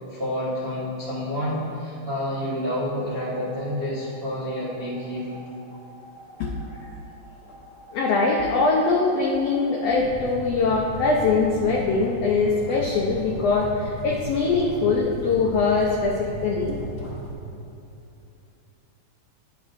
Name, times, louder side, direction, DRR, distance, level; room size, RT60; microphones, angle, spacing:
voice 1, 0.1-5.4, equal, 65° right, -9 dB, 0.5 m, -29 dB
sound 1, 3.0-17.3, right 1 dB, 25° left, 1.4 m, -38 dB
voice 2, 7.9-16.8, left 4 dB, 80° left, -2 dB, 1.4 m, -22 dB
10.5 x 6.5 x 2.5 m, 2.6 s
omnidirectional pair, 3.6 m